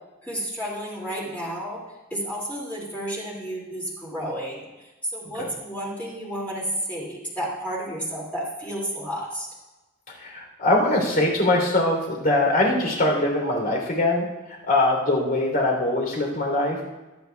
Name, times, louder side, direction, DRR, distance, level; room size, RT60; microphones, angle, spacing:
voice 1, 0.2-1.8 2.1-9.5, equal, 5° left, -5 dB, 2.4 m, -31 dB
voice 2, 10.2-14.2 14.7-16.8, left 1 dB, 45° left, 0 dB, 3.3 m, -22 dB
24.5 x 9.4 x 2.3 m, 1.1 s
head